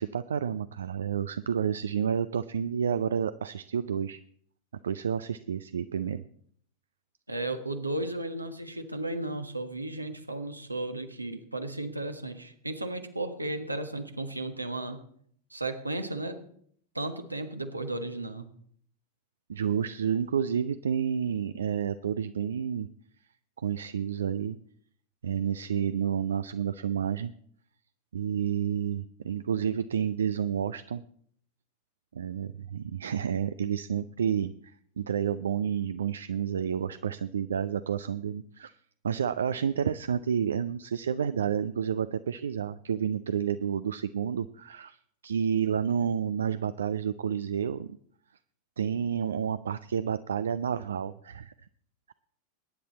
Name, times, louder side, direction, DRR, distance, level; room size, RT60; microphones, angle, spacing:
voice 1, 0.0-4.2 4.8-6.2 19.5-22.9 23.6-24.6 25.2-27.3 28.1-31.0 32.1-38.8 39.0-45.0 45.2-47.9 48.8-51.5 52.1-52.2, right 8 dB, 65° right, 13 dB, 0.5 m, -30 dB
voice 2, 7.3-15.0 15.5-16.4 16.9-18.5, right 2 dB, 85° right, 7 dB, 1.4 m, -34 dB
22.0 x 10.0 x 4.1 m, 0.63 s
figure-of-eight pair, 90°, 0 cm